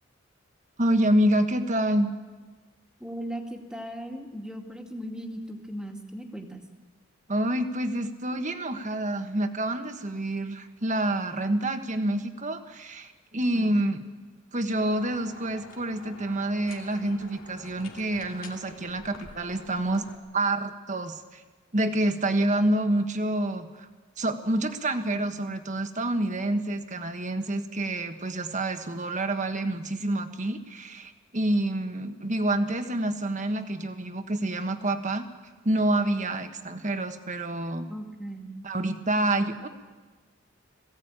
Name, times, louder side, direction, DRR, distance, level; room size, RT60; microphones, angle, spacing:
voice 1, 0.8-2.1 7.3-14.0 14.5-20.0 20.3-21.4 21.7-23.9 24.2-35.2 35.6-37.9 38.6-39.7, right 1 dB, 40° right, 7 dB, 1.5 m, -27 dB
voice 2, 3.0-6.6 13.5-13.8 37.9-38.5, equal, 5° right, 2 dB, 2.2 m, -38 dB
sound 1, 14.8-20.2, left 2 dB, 85° left, 2.8 m, -48 dB
21.5 x 16.5 x 9.0 m, 1.3 s
head